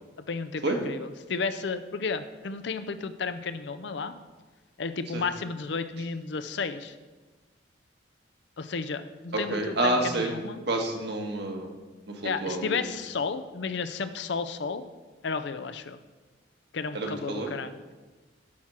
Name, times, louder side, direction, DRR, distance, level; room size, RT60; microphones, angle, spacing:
voice 1, 0.2-4.1 4.8-6.9 8.6-10.6 12.2-14.8 15.2-16.0 16.7-17.9, left 4 dB, 60° left, 11 dB, 0.5 m, -33 dB
voice 2, 9.5-10.4 10.7-11.7 12.1-12.9 16.9-17.5, right 2 dB, 55° right, 2 dB, 1.4 m, -29 dB
10.5 x 4.4 x 6.1 m, 1.3 s
head